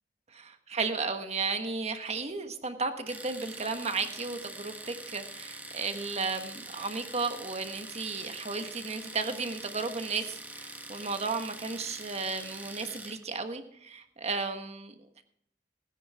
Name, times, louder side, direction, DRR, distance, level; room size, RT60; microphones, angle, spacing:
voice 1, 0.3-14.9, right 4 dB, 40° right, 7 dB, 1.4 m, -34 dB
Domestic sounds home sounds, 3.1-13.2, right 2 dB, 10° right, 1.1 m, -44 dB
20.0 x 9.8 x 3.5 m, 0.71 s
head